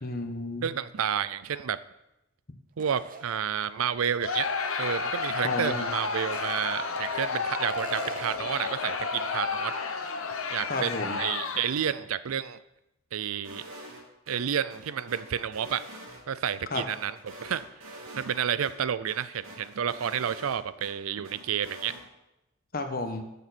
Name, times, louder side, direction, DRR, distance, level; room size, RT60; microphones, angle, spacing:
voice 1, 0.0-0.7 5.4-5.9 10.7-11.2 16.7-16.8 22.7-23.2, left 2 dB, 45° left, 5 dB, 1.2 m, -32 dB
voice 2, 0.6-1.8 2.8-4.5 4.8-9.7 10.5-12.6 13.1-13.6 14.3-15.8 16.3-17.6 18.1-21.9, right 8 dB, 90° right, 15 dB, 0.5 m, -30 dB
sound 1, 2.8-3.8 4.2-4.3 6.1-7.3 7.7-8.6, right 3 dB, 40° right, 0.7 m, -41 dB
Crowd, 4.2-11.9, left 4 dB, 80° left, 1.1 m, -31 dB
sound 2, 13.4-14.4 14.7-16.5 16.9-18.4 18.6-18.7 19.1-20.9 21.2-22.0, right 1 dB, 75° right, 2.8 m, -46 dB
13.5 x 6.8 x 4.3 m, 0.90 s
head